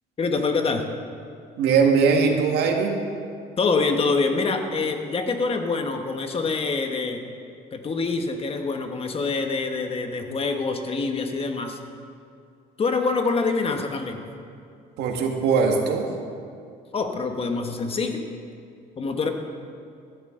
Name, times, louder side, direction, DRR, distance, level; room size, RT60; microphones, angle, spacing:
voice 1, 0.2-0.8 3.6-7.2 7.7-11.8 12.8-14.2 16.9-18.2 19.0-19.3, left 4 dB, 35° left, 5 dB, 1.4 m, -25 dB
voice 2, 1.6-3.0 15.0-16.1, right 5 dB, 80° right, 2 dB, 1.8 m, -20 dB
15.0 x 13.0 x 3.8 m, 2.4 s
cardioid pair, 110°, 17 cm